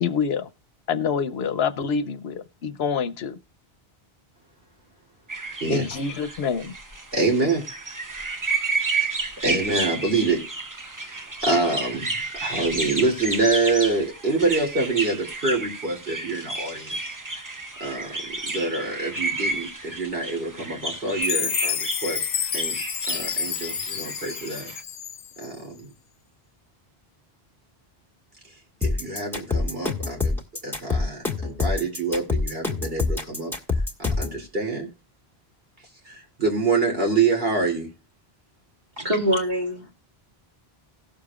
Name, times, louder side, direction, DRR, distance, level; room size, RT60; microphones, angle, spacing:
voice 1, 0.0-0.5 0.9-3.4 5.7-6.7, left 6 dB, 80° left, 1.0 m, -26 dB
sound 1, 5.3-24.8, right 3 dB, 20° right, 0.7 m, -31 dB
voice 2, 7.1-7.6 9.0-9.2 9.4-10.4 11.0-17.0 17.8-18.1 18.4-22.3 22.5-22.8 23.1-24.7 25.4-25.9 28.8-30.4 30.6-33.5 34.0-34.9 36.1-37.9, right 3 dB, 65° right, 3.0 m, -26 dB
Chime, 21.2-25.5, left 8 dB, 65° left, 0.8 m, -29 dB
sound 2, 28.8-34.4, left 3 dB, ahead, 1.6 m, -25 dB
voice 3, 39.0-39.9, equal, 45° right, 2.5 m, -24 dB
18.0 x 6.9 x 2.4 m
omnidirectional pair, 1.0 m